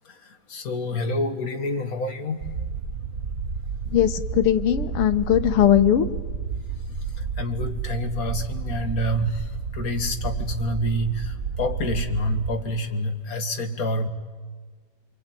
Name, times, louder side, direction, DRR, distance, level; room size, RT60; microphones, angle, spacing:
voice 1, 0.5-2.4 7.4-14.1, left 1 dB, 45° left, 5 dB, 2.2 m, -27 dB
sound 1, 2.4-12.6, right 5 dB, 40° right, 1.4 m, -31 dB
voice 2, 3.9-6.1, left 10 dB, 85° left, 10 dB, 2.0 m, -19 dB
28.0 x 23.0 x 9.1 m, 1.5 s
omnidirectional pair, 2.4 m